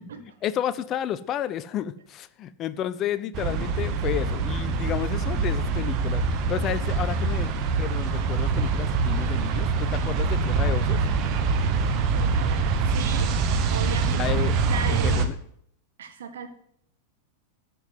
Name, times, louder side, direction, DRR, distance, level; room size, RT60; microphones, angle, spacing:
voice 1, 0.2-6.2 6.5-11.0 14.2-14.5 14.9-15.3, left 10 dB, 30° left, 15 dB, 0.7 m, -31 dB
sound 1, 3.3-15.3, right 4 dB, 40° right, 1.2 m, -24 dB
voice 2, 12.1-13.3 13.7-15.3 16.0-16.5, right 6 dB, 60° right, 7 dB, 1.6 m, -36 dB
13.0 x 5.4 x 7.7 m, 0.68 s
figure-of-eight pair, 90°, 0 cm